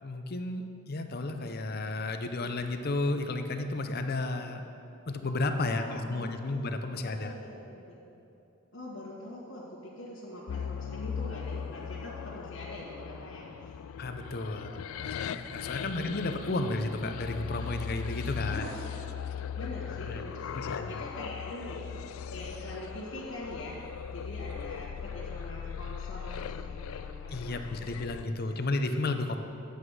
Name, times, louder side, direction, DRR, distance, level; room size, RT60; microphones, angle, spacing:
voice 1, 0.0-4.6 5.1-7.3 14.0-18.6 20.0-20.2 20.5-21.0 27.3-29.4, left 2 dB, 50° left, 7 dB, 0.6 m, -33 dB
voice 2, 5.7-6.7 7.0-8.0 8.7-13.7 15.8-16.2 18.5-19.0 19.5-21.8 22.3-23.8 24.1-28.6, left 1 dB, 70° left, -8 dB, 1.7 m, -43 dB
sound 1, 10.5-28.2, left 7 dB, 90° left, 0.3 m, -39 dB
9.6 x 8.4 x 4.8 m, 2.9 s
head